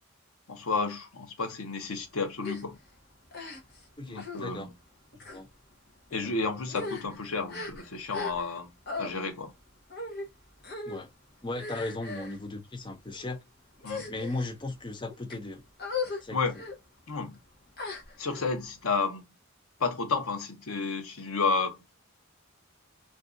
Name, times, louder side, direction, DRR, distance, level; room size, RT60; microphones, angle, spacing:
voice 1, 0.5-2.8 4.1-4.7 6.1-8.7 9.0-9.5 13.8-14.0 16.3-16.5 17.1-17.4 18.2-19.2 19.8-21.8, left 4 dB, 85° left, 0.8 m, -31 dB
sound 1, 2.4-2.6 3.3-3.8 4.2-4.4 5.1-5.4 6.1-6.3 6.7-8.6 8.9-9.1 9.9-10.3 10.6-11.0 11.5-12.4 13.1-13.3 13.8-14.5 15.1-15.4 15.8-16.2 16.5-16.8 17.8-18.4, left 4 dB, 50° left, 0.9 m, -38 dB
voice 2, 4.0-4.7 5.3-5.5 10.8-11.1 11.4-13.4 14.1-15.6 16.2-16.4, left 2 dB, 20° left, 0.5 m, -36 dB
2.6 x 2.3 x 3.6 m
head